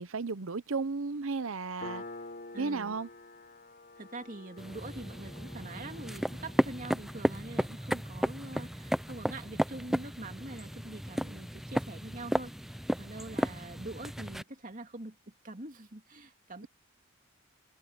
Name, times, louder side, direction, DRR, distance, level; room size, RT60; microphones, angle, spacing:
voice 1, 0.0-2.0 2.6-3.1, right 4 dB, 65° right, 0.8 m, -34 dB
Piano, 1.8-9.0, left 2 dB, 45° left, 6.7 m, -49 dB
voice 2, 2.5-3.0 4.0-12.5 13.0-15.2 15.4-16.7, right 2 dB, 35° right, 2.5 m, -44 dB
sound 1, 4.6-14.4, equal, ahead, 0.5 m, -34 dB
head